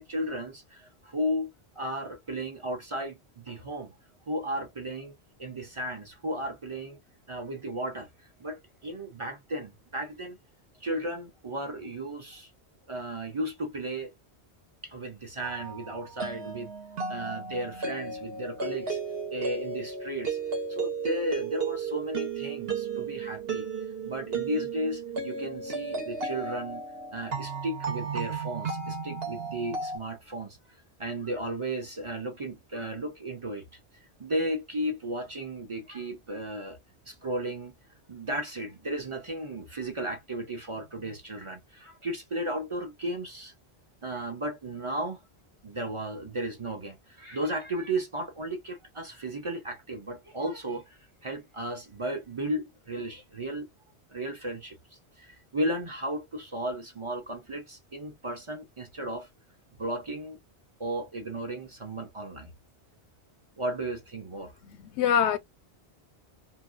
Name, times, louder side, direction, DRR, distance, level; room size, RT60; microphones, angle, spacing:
voice 1, 0.0-3.9 4.3-5.1 5.4-7.0 7.3-8.1 8.4-10.4 10.8-12.5 12.9-14.1 14.8-19.0 19.3-20.4 20.7-23.7 24.0-26.8 27.1-30.6 31.0-33.6 34.2-36.8 37.1-37.7 38.1-43.5 44.0-45.2 45.6-53.7 54.1-59.3 59.8-60.4 60.8-62.5 63.6-64.5, right 1 dB, 35° right, 0.7 m, -34 dB
sound 1, 15.4-30.0, right 4 dB, 65° right, 1.3 m, -34 dB
voice 2, 64.6-65.4, left 8 dB, 85° left, 0.9 m, -25 dB
2.7 x 2.2 x 2.3 m
omnidirectional pair, 1.1 m